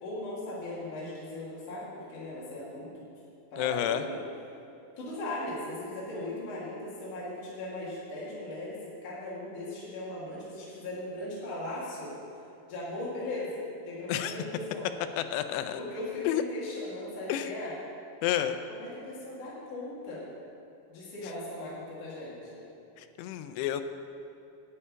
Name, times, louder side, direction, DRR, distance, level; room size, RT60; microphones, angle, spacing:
voice 1, 0.0-3.0 3.5-4.2 5.0-12.1 12.7-14.9 15.8-17.7 18.7-20.3 20.9-22.6, left 1 dB, 55° left, -8 dB, 3.4 m, -38 dB
voice 2, 3.6-4.0 14.1-14.3 15.2-15.8 16.3-16.4 17.3-17.5 18.2-18.6 23.0-23.8, left 12 dB, 90° left, 9 dB, 2.7 m, -30 dB
11.0 x 5.6 x 8.8 m, 2.9 s
omnidirectional pair, 4.7 m